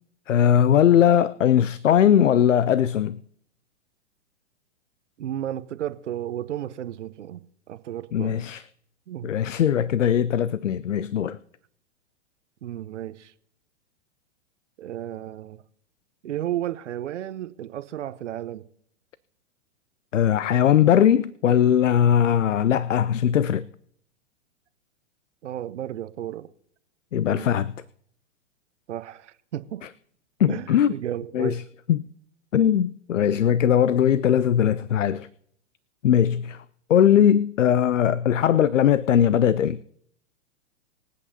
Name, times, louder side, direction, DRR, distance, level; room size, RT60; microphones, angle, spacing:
voice 1, 0.3-3.2 8.1-8.6 9.2-11.4 20.1-23.7 27.1-27.7 30.4-30.9 31.3-31.6 31.9-32.1 32.5-35.3 36.0-36.6 36.9-39.8, left 9 dB, 90° left, 0.5 m, -20 dB
voice 2, 5.2-7.4 7.7-8.4 9.1-9.3 12.6-13.3 14.8-15.6 16.2-18.6 25.4-26.5 27.3-27.5 28.9-29.8 30.5-31.6, right 12 dB, 70° right, 0.9 m, -33 dB
25.0 x 8.4 x 2.8 m
hypercardioid pair, 115°, 36 cm